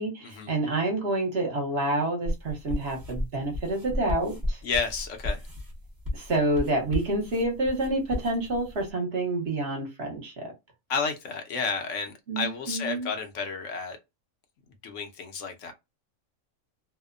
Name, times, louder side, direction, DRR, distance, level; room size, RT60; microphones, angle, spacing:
voice 1, 0.0-4.6 6.1-10.5 12.3-13.1, right 2 dB, 55° right, 1.1 m, -28 dB
sound 1, 2.3-8.9, left 1 dB, 20° right, 0.6 m, -34 dB
voice 2, 4.6-5.4 10.9-14.0 14.8-15.7, left 5 dB, 70° left, 1.0 m, -31 dB
2.7 x 2.1 x 2.4 m
omnidirectional pair, 1.4 m